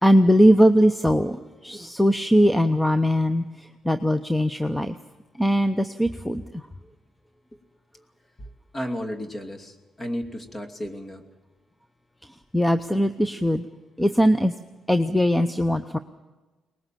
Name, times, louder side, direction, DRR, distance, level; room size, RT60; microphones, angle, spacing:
voice 1, 0.0-1.4 1.6-3.4 3.8-5.0 5.4-6.6 12.5-13.7 14.0-14.5 14.9-16.0, equal, 5° left, 10 dB, 0.8 m, -20 dB
voice 2, 8.7-11.3, equal, 30° left, 4 dB, 2.6 m, -33 dB
23.5 x 20.0 x 7.6 m, 1.2 s
cardioid pair, 90°, 0 cm